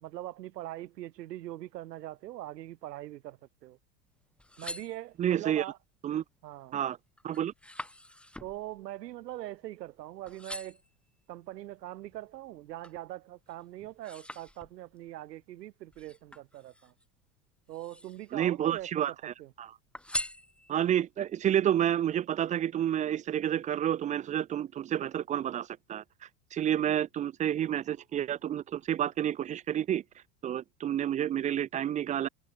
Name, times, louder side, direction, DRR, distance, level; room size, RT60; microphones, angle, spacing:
voice 1, 0.0-3.8 4.6-5.8 6.4-6.8 8.4-10.8 11.3-16.9 17.7-19.5, right 15 dB, 85° right, 1.4 m, -42 dB
sound 1, 4.2-5.5 6.1-6.5 6.9-10.0 10.3-11.0 11.6-13.1 13.5-15.0 15.9-17.1 17.6-18.4 18.7-19.5 19.9-21.0 21.5-21.6, left 1 dB, ahead, 1.0 m, -43 dB
voice 2, 5.2-5.6 6.0-6.2 6.7-7.0 7.2-7.5 18.3-19.7 20.7-26.0 26.5-30.0 30.4-32.3, right 10 dB, 20° right, 0.3 m, -29 dB
hypercardioid pair, 100°, 48 cm